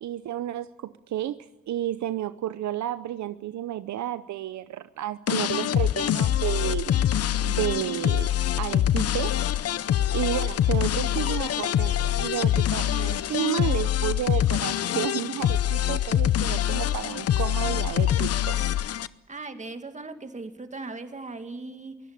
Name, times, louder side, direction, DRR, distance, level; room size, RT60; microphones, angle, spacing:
voice 1, 0.0-7.0 7.4-8.3 8.6-9.4 10.1-18.6, right 12 dB, 70° right, 13 dB, 0.8 m, -31 dB
sound 1, 5.3-19.1, left 11 dB, 55° left, 0.7 m, -25 dB
voice 2, 19.3-22.0, right 3 dB, 25° right, 8 dB, 2.1 m, -38 dB
23.5 x 16.0 x 8.7 m, 0.96 s
cardioid pair, 90°, 30 cm